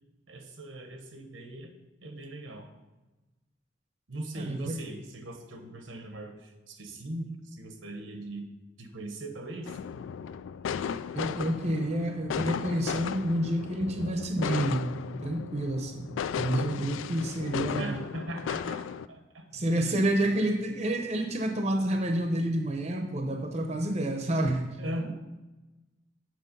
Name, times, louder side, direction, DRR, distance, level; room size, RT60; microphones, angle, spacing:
voice 1, 0.3-2.7 4.1-8.5 8.8-9.8 17.8-19.4 24.8-25.1, right 1 dB, 85° right, 5 dB, 1.2 m, -40 dB
voice 2, 4.4-4.8 11.1-15.0 15.2-18.0 19.5-24.7, right 1 dB, 35° right, 4 dB, 0.7 m, -29 dB
sound 1, 9.7-19.1, left 7 dB, 80° left, 0.3 m, -35 dB
7.6 x 6.2 x 5.4 m, 1.1 s
head